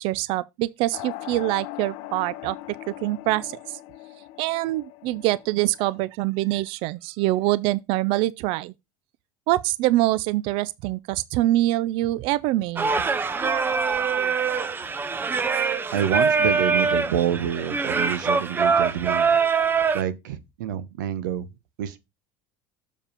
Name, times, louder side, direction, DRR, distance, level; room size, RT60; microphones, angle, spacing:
voice 1, 0.0-2.6 2.9-3.8 4.4-8.7 9.5-12.9, right 17 dB, 65° right, 0.4 m, -24 dB
sound 1, 0.9-6.1, left 16 dB, 65° left, 0.7 m, -40 dB
Singing, 12.8-20.0, right 5 dB, 20° right, 0.7 m, -23 dB
voice 2, 15.9-19.4 19.9-21.5 21.8-22.0, right 10 dB, 90° right, 0.9 m, -27 dB
7.1 x 4.8 x 5.1 m
supercardioid pair, 110°, 10 cm